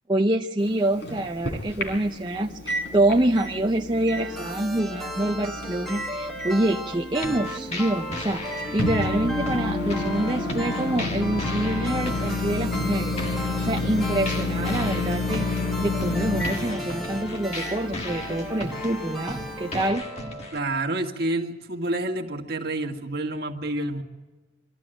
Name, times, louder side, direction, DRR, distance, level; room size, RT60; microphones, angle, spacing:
voice 1, 0.1-15.5 15.8-20.1, right 1 dB, 25° right, 2 dB, 0.6 m, -26 dB
Microwave oven, 0.6-19.9, left 2 dB, 60° left, 4.4 m, -31 dB
sound 1, 4.2-20.8, equal, ahead, 1.3 m, -36 dB
sound 2, 7.2-20.6, left 1 dB, 35° left, 1.6 m, -37 dB
voice 2, 20.5-24.0, right 2 dB, 50° right, 3 dB, 1.8 m, -28 dB
23.5 x 13.5 x 9.0 m, 1.3 s
head